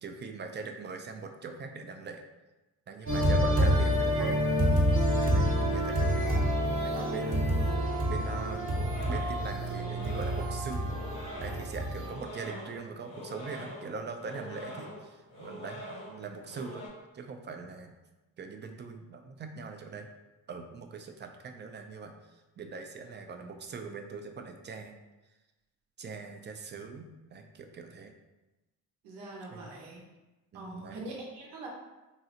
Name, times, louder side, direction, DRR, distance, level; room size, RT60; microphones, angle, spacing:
voice 1, 0.0-2.2 2.9-4.6 5.2-6.4 6.8-7.7 8.1-8.8 9.1-10.9 11.4-16.8 17.1-18.0 18.4-20.1 20.5-22.1 22.6-25.0 26.0-28.1 29.5-29.7 30.5-31.0, right 4 dB, 30° right, 5 dB, 0.4 m, -42 dB
sound 1, 3.1-12.1, equal, 50° right, 1.0 m, -27 dB
sound 2, 8.2-16.9, equal, 60° left, 1.4 m, -45 dB
voice 2, 29.0-30.0 30.5-31.7, right 2 dB, 90° right, -2 dB, 0.7 m, -43 dB
3.8 x 2.0 x 2.8 m, 1.1 s
supercardioid pair, 60°, 40 cm